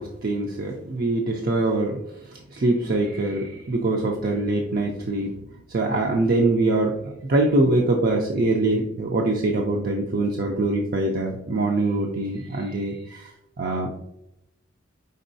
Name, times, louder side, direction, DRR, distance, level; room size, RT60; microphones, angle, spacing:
voice 1, 0.0-2.0 2.3-5.4 5.7-13.3 13.6-13.9, right 2 dB, 50° right, 0 dB, 0.5 m, -23 dB
5.3 x 3.7 x 2.6 m, 0.83 s
head